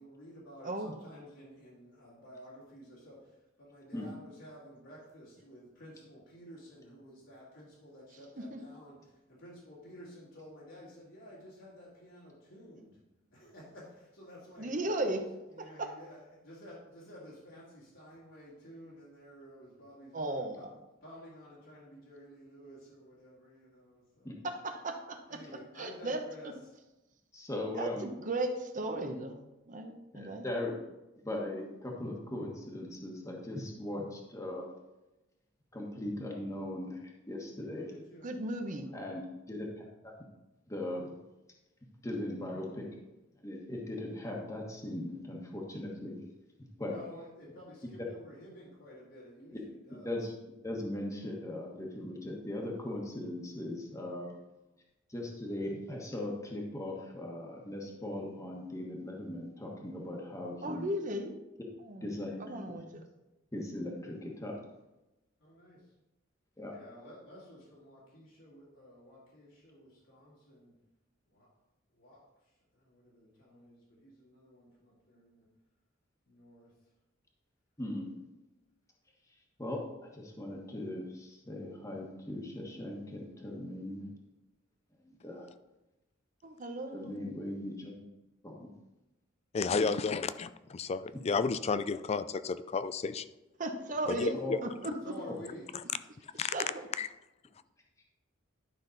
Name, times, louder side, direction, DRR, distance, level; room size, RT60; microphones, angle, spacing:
voice 1, 0.0-13.0 13.3-14.8 15.5-20.7 21.0-24.3 25.3-26.7 37.6-38.3 38.6-39.1 46.8-50.2 65.4-65.9 66.7-70.8 71.3-71.5 71.9-75.5 76.2-76.8 94.1-94.4 95.0-95.7, equal, 80° left, -8 dB, 2.7 m, -52 dB
voice 2, 14.6-15.3 15.6-15.9 20.1-20.7 24.4-25.4 25.8-26.2 27.7-29.4 29.7-30.4 38.2-38.9 60.6-61.3 61.9-63.0 86.4-87.2 93.6-94.3 94.6-95.1 96.5-96.9, right 1 dB, 40° right, 5 dB, 0.8 m, -36 dB
voice 3, 27.3-28.1 30.1-30.8 31.2-34.7 35.7-37.9 38.9-39.2 39.5-40.1 40.7-41.2 42.0-43.0 43.4-46.2 46.8-46.9 49.5-49.6 50.0-50.3 50.6-54.3 55.1-60.9 62.0-62.4 63.5-64.6 66.6-66.7 77.8-78.1 79.6-79.8 80.1-84.1 85.2-85.5 86.9-88.0 88.4-88.7 94.3-94.5 96.7-96.8, left 1 dB, 15° left, -1 dB, 1.3 m, -39 dB
voice 4, 89.5-93.3 94.1-94.6 96.4-96.5 97.0-97.1, left 4 dB, 35° left, 14 dB, 0.3 m, -32 dB
11.0 x 5.8 x 4.0 m, 1.0 s
head